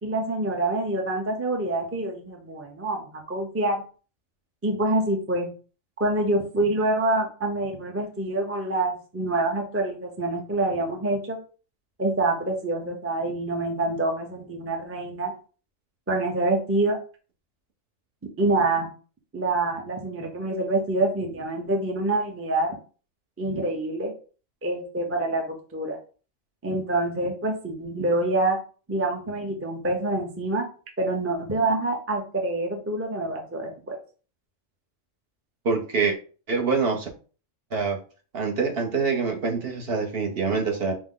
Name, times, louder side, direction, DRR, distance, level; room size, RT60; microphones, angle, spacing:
voice 1, 0.0-3.8 4.6-5.5 6.0-11.4 12.0-15.3 16.1-17.0 18.4-18.9 19.3-22.8 23.4-24.1 24.6-26.0 26.6-28.6 28.9-30.7 31.0-34.0, right 2 dB, 15° right, 2 dB, 0.5 m, -26 dB
voice 2, 35.6-36.2 36.5-37.1 37.7-38.0 38.3-40.9, right 4 dB, 55° right, 2 dB, 0.9 m, -25 dB
5.2 x 2.1 x 3.7 m, 0.38 s
omnidirectional pair, 1.3 m